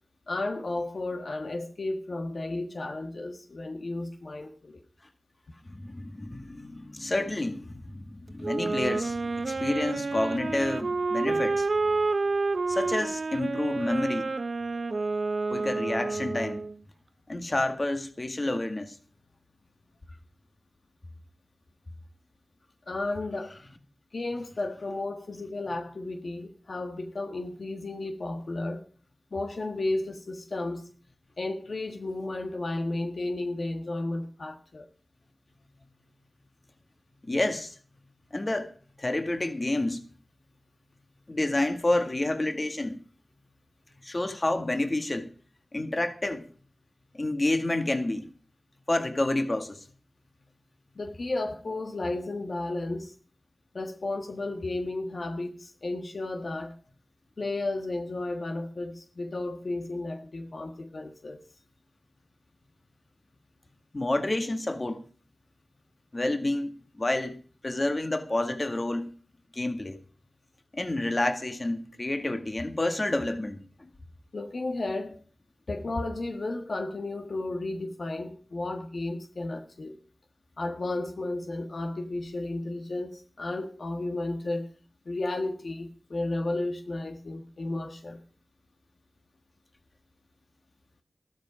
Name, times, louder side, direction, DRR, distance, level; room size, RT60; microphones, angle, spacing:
voice 1, 0.3-4.8 22.9-23.6 24.1-28.8 29.3-30.8 31.4-34.8 50.9-53.1 53.7-56.8 57.4-61.4 74.3-75.2 75.7-80.0 80.6-84.7 85.0-88.2, left 2 dB, 70° left, 1.5 m, -33 dB
voice 2, 5.6-11.7 12.7-14.3 15.5-16.6 17.3-19.0 37.2-37.7 38.3-38.7 39.0-40.0 41.3-43.0 44.0-45.3 45.7-46.5 47.1-48.3 48.9-49.8 63.9-65.0 66.1-67.4 67.6-69.1 69.5-70.0 70.7-73.9, left 2 dB, 40° left, 1.9 m, -29 dB
Wind instrument woodwind instrument, 8.4-16.7, right 3 dB, 70° right, 0.9 m, -29 dB
13.5 x 12.5 x 5.0 m
cardioid pair, 45°, 0 cm